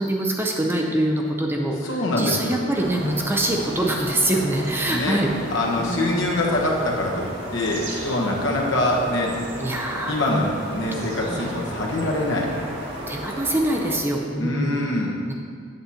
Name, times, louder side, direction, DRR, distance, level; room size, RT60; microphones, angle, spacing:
voice 1, 0.0-5.3 5.8-6.2 9.6-10.4 10.9-11.4 13.1-14.8 15.3-15.4, right 1 dB, 10° right, 0 dB, 0.5 m, -24 dB
voice 2, 1.8-2.6 4.9-5.2 5.5-9.3 10.1-12.5 14.4-15.2, left 1 dB, 65° left, -2 dB, 1.2 m, -24 dB
sound 1, 2.7-14.0, right 1 dB, 60° right, 1.5 m, -34 dB
7.9 x 7.7 x 2.8 m, 2.1 s
head